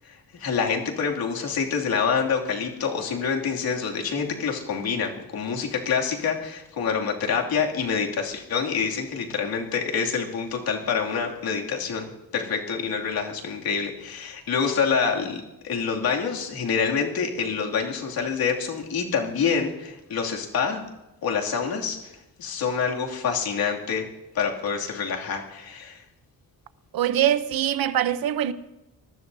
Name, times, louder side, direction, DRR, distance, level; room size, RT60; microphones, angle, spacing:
voice 1, 0.0-20.9 21.2-24.0 24.3-26.0, left 6 dB, 85° left, 2.7 m, -27 dB
voice 2, 26.9-28.5, right 11 dB, 80° right, 0.8 m, -23 dB
25.0 x 20.0 x 2.7 m
wide cardioid pair, 170°, 35 cm